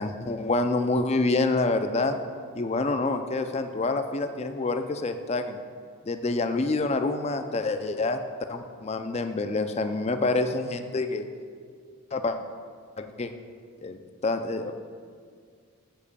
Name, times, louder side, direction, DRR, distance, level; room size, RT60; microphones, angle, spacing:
voice 1, 0.0-2.2 2.5-5.6 6.1-8.2 8.5-11.3 12.1-12.4 13.0-13.3 13.8-14.7, left 3 dB, 30° left, 8 dB, 0.4 m, -27 dB
7.2 x 5.4 x 6.8 m, 2.1 s
head